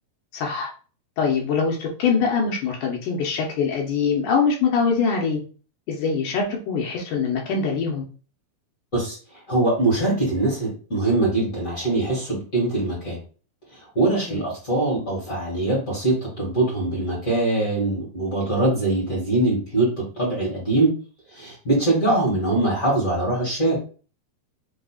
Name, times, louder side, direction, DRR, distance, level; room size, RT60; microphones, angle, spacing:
voice 1, 0.3-0.7 1.2-5.4 5.9-8.0 14.3-14.4, left 5 dB, 75° left, -1 dB, 1.8 m, -23 dB
voice 2, 9.5-13.2 13.9-20.9 21.3-23.8, right 2 dB, 35° left, -4 dB, 1.4 m, -22 dB
6.4 x 2.9 x 2.4 m, 0.37 s
omnidirectional pair, 4.6 m